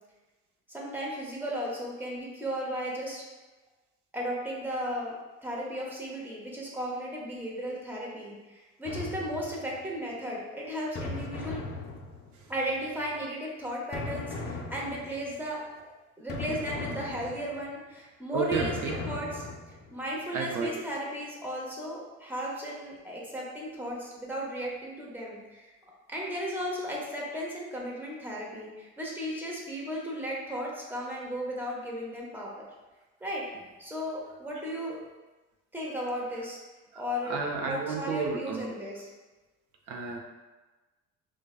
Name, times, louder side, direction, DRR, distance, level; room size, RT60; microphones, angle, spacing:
voice 1, 0.7-3.2 4.1-5.2 5.4-11.6 12.5-18.8 19.1-19.5 19.9-25.6 26.1-32.5 33.2-33.5 33.8-35.0 35.7-36.6 36.9-37.4 37.6-39.1, equal, 5° right, -4 dB, 0.7 m, -35 dB
sound 1, 8.9-9.9 11.0-12.5 13.9-15.3 16.3-17.7 18.5-19.9, left 3 dB, 35° left, 0.4 m, -38 dB
voice 2, 18.3-19.0 20.3-20.7 37.3-38.7 39.9-40.2, right 4 dB, 70° right, 1 dB, 0.7 m, -31 dB
4.6 x 2.2 x 2.3 m, 1.2 s
cardioid pair, 130°, 30 cm